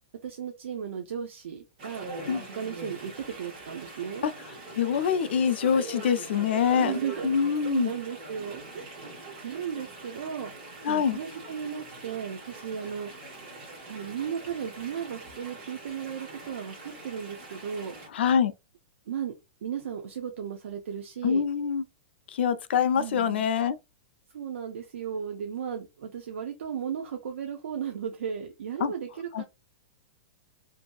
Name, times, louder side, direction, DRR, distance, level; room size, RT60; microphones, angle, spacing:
voice 1, 0.2-2.1 2.4-4.2 6.8-7.4 7.6-9.0 9.4-13.1 13.9-18.0 19.1-19.3 19.6-21.4 22.9-23.5 24.3-29.4, right 8 dB, 80° right, 0.5 m, -35 dB
Chatter / Stream, 1.8-18.1, right 2 dB, 35° right, 1.4 m, -43 dB
voice 2, 4.8-6.9 7.2-7.9 10.8-11.2 18.1-18.5 21.2-21.8 22.3-23.8 28.8-28.9 29.3-29.4, left 7 dB, 60° left, 0.4 m, -25 dB
2.6 x 2.6 x 2.2 m
supercardioid pair, 180°, 7 cm